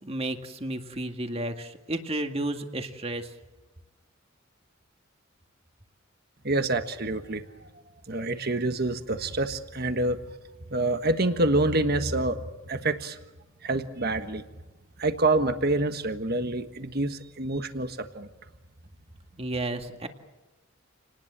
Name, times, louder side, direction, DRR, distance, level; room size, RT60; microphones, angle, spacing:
voice 1, 0.0-3.3 19.4-20.1, right 1 dB, 30° right, 6 dB, 2.0 m, -32 dB
voice 2, 6.4-7.7 8.1-10.2 10.7-13.2 13.6-14.4 15.0-18.3, right 2 dB, 50° right, 8 dB, 1.5 m, -27 dB
29.0 x 19.5 x 7.5 m, 1.1 s
head